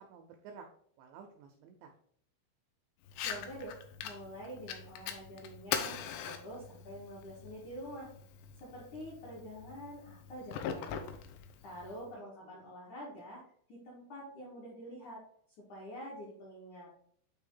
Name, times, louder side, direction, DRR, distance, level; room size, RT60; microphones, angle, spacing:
voice 1, 0.1-0.7 1.0-1.9 12.2-12.7, right 6 dB, 90° right, 4 dB, 2.4 m, -53 dB
Fire, 3.1-12.1, left 8 dB, 90° left, 2.5 m, -42 dB
voice 2, 3.2-3.7 4.0-6.0 6.2-8.1 8.6-11.1 11.6-13.4 13.7-15.2 15.7-16.9, equal, 65° left, -6 dB, 1.9 m, -46 dB
8.9 x 3.4 x 3.7 m, 0.62 s
omnidirectional pair, 5.9 m